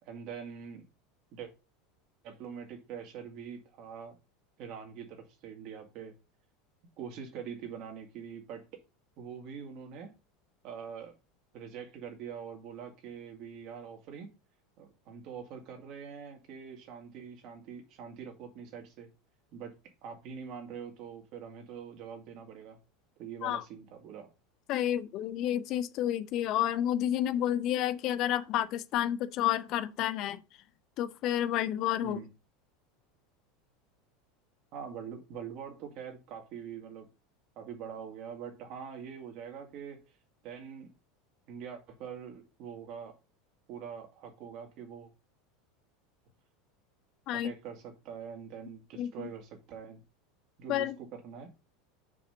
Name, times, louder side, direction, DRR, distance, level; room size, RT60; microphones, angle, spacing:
voice 1, 0.0-0.8 1.3-1.5 2.2-4.2 4.6-6.1 7.0-8.6 9.2-10.1 10.6-11.1 11.5-14.3 14.8-19.1 19.5-19.7 20.0-22.8 23.2-24.3 32.0-32.3 34.7-37.1 37.6-40.0 40.4-40.9 41.5-43.1 43.7-45.1 47.3-50.0 50.6-51.5, right 7 dB, 50° right, 2.3 m, -44 dB
voice 2, 24.7-30.4 31.0-32.2 47.3-47.5 49.0-49.3 50.7-50.9, left 12 dB, 50° left, 0.6 m, -30 dB
5.7 x 5.0 x 5.5 m
hypercardioid pair, 80°, 0 cm